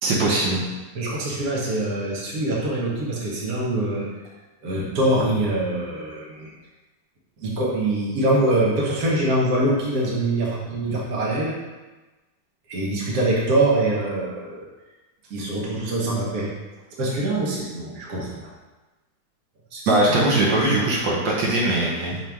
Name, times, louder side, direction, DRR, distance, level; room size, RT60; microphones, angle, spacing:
voice 1, 0.0-0.6 19.9-22.2, right 2 dB, 80° right, -4 dB, 1.8 m, -20 dB
voice 2, 0.9-4.1 4.6-6.5 7.4-11.5 12.7-14.6 15.3-16.5 17.0-18.5 19.7-19.9, right 1 dB, 55° right, -4 dB, 1.6 m, -24 dB
6.0 x 4.4 x 3.5 m, 1.2 s
omnidirectional pair, 2.0 m